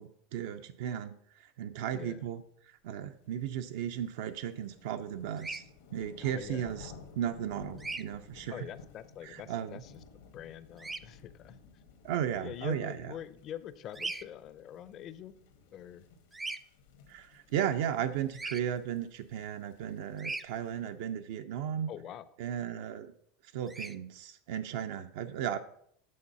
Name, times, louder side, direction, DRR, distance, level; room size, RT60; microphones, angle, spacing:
voice 1, 0.0-2.4 2.8-5.6 5.9-8.7 9.2-9.8 12.0-13.1 17.1-21.9 22.4-23.1 23.5-25.6, right 9 dB, 75° right, 8 dB, 0.5 m, -35 dB
voice 2, 1.9-2.2 6.2-6.7 8.5-11.6 12.4-15.3 15.7-16.0 21.9-22.2, left 10 dB, 40° left, 14 dB, 0.5 m, -44 dB
sound 1, 3.4-20.9, left 5 dB, 85° left, 1.4 m, -56 dB
Bird vocalization bird call bird song, 5.4-5.6 7.8-8.0 10.8-11.0 13.9-14.3 16.3-16.6 18.3-18.6 20.2-20.5 23.7-24.0, right 3 dB, 10° right, 0.4 m, -38 dB
8.6 x 3.9 x 5.4 m, 0.67 s
supercardioid pair, 130°, 0 cm